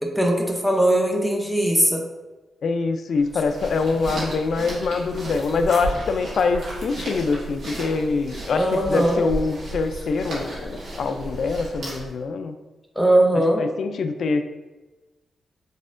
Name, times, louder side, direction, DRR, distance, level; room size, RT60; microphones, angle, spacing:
voice 1, 0.0-2.0 8.5-9.2 13.0-13.6, right 1 dB, 5° left, 1 dB, 0.6 m, -20 dB
voice 2, 2.6-12.6 13.3-14.4, left 4 dB, 65° left, 8 dB, 0.3 m, -24 dB
sound 1, 3.2-12.2, right 1 dB, 65° right, 1.5 m, -34 dB
4.1 x 3.6 x 2.5 m, 1.1 s
cardioid pair, 100°, 0 cm